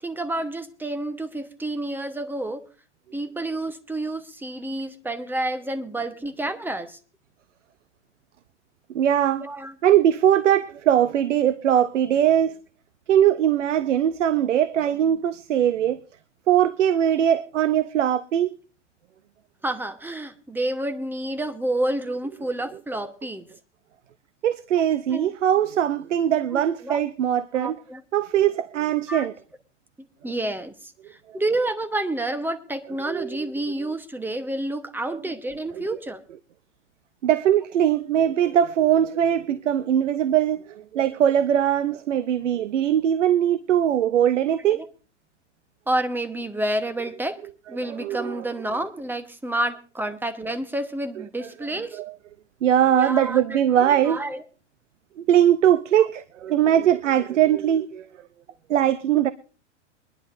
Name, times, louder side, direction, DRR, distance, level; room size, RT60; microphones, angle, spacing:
voice 1, 0.0-2.6 3.1-7.0 9.4-9.8 19.6-23.5 25.1-25.3 26.5-27.0 27.5-28.0 29.1-29.3 30.0-36.2 44.7-44.8 45.9-47.4 47.7-52.0 53.0-53.6 53.9-54.4 56.0-56.1, right 1 dB, 5° right, 1.1 m, -29 dB
voice 2, 8.9-9.5 9.8-12.5 13.1-16.0 16.5-18.6 24.4-27.8 28.1-29.3 33.1-33.3 35.8-35.9 37.2-44.8 47.9-48.4 51.9-52.1 52.6-54.2 55.2-58.1 58.7-59.3, right 10 dB, 85° right, 0.7 m, -21 dB
23.0 x 11.0 x 2.6 m
hypercardioid pair, 110°, 36 cm